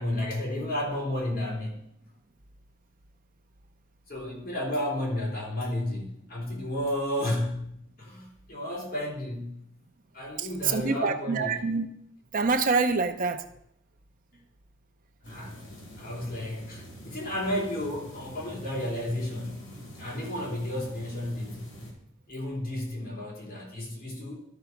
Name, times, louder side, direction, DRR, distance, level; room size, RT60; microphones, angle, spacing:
voice 1, 0.0-1.8 4.1-7.7 8.0-9.6 10.1-11.5 15.3-15.6 16.0-19.7 19.9-21.6 22.3-24.3, left 1 dB, 50° left, -3 dB, 3.5 m, -32 dB
voice 2, 10.4-11.9 12.3-13.4, right 4 dB, 45° right, 8 dB, 0.6 m, -26 dB
sound 1, 15.2-21.9, equal, 70° left, 3.3 m, -45 dB
12.5 x 4.7 x 5.9 m, 0.75 s
head